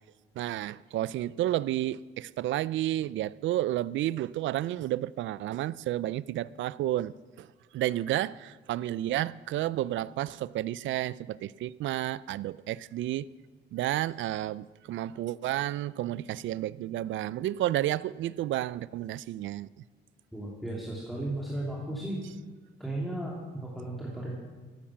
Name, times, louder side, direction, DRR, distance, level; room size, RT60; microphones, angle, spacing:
voice 1, 0.4-7.5 7.7-13.3 13.7-19.7, right 14 dB, 75° right, 0.4 m, -31 dB
voice 2, 20.3-22.2 22.8-24.3, right 1 dB, ahead, 2.7 m, -35 dB
14.5 x 10.0 x 5.8 m
cardioid pair, 90°, 20 cm